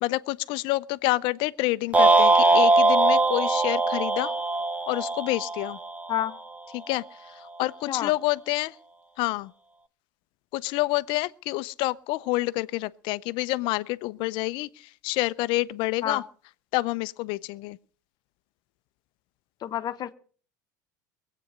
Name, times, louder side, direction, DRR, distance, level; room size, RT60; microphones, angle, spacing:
voice 1, 0.0-4.3 4.9-5.8 6.7-8.7 9.2-9.5 10.5-16.2 16.7-17.8, left 20 dB, 60° left, 0.6 m, -28 dB
sound 1, 1.9-6.3, right 2 dB, 15° right, 1.0 m, -21 dB
voice 2, 19.6-20.1, left 11 dB, 45° left, 1.1 m, -28 dB
22.5 x 8.5 x 5.3 m
hypercardioid pair, 80°, 10 cm